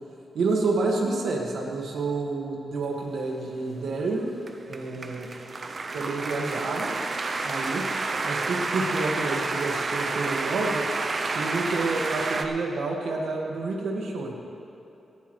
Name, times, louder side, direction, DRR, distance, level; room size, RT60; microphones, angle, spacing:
voice 1, 0.3-4.3 4.7-5.3 5.9-6.9 7.4-7.9 8.2-10.9 11.3-14.3, right 3 dB, 80° right, 0 dB, 1.8 m, -29 dB
sound 1, 3.2-12.5, right 3 dB, 35° right, 0.6 m, -30 dB
16.5 x 13.5 x 3.2 m, 2.9 s
wide cardioid pair, 160°, 0 cm